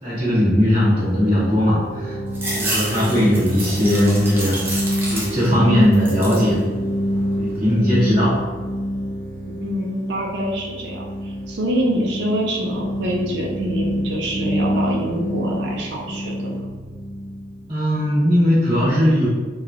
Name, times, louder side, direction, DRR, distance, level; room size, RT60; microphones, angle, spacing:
voice 1, 0.0-2.2 2.5-4.8 5.1-6.6 7.3-8.4 17.7-19.3, equal, 30° right, -12 dB, 0.8 m, -18 dB
sound 1, 0.8-18.4, equal, 85° left, 1.0 m, -27 dB
sound 2, 2.3-5.6 5.9-6.5 7.0-7.7, right 1 dB, 10° right, 0.5 m, -29 dB
voice 2, 9.6-16.6, right 1 dB, 65° right, -2 dB, 0.4 m, -25 dB
3.0 x 2.2 x 2.4 m, 1.4 s
head